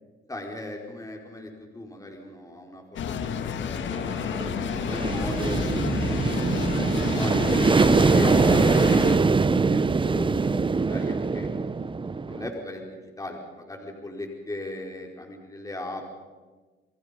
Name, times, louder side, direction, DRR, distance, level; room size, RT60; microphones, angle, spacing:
voice 1, 0.3-4.0 4.4-11.5 12.3-16.1, left 1 dB, 15° left, 1 dB, 4.7 m, -38 dB
sound 1, 3.0-9.2, left 7 dB, 70° left, 1.8 m, -30 dB
sound 2, 3.9-12.5, right 4 dB, 25° right, 1.0 m, -23 dB
29.0 x 22.5 x 5.3 m, 1.3 s
cardioid pair, 90°, 20 cm